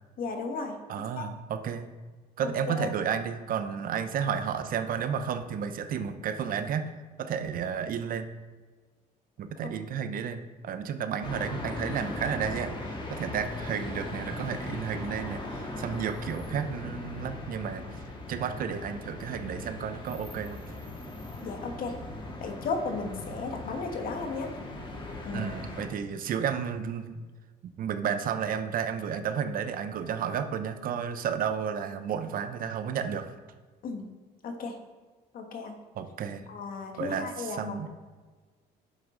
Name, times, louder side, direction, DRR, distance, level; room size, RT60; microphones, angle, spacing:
voice 1, 0.2-0.8 1.2-1.3 2.7-2.9 21.4-21.9 22.4-24.5 25.2-25.5 33.8-34.1 34.4-34.7 35.3-35.7 36.5-37.9, left 4 dB, 60° left, 4 dB, 1.4 m, -34 dB
voice 2, 0.9-1.9 2.4-8.3 9.4-18.0 18.3-20.6 25.3-27.2 27.8-33.3 35.9-36.4 37.0-37.9, right 7 dB, 55° right, 9 dB, 0.7 m, -32 dB
sound 1, 11.2-25.9, left 2 dB, 30° left, 1.7 m, -39 dB
9.8 x 7.2 x 3.8 m, 1.4 s
cardioid pair, 110°, 17 cm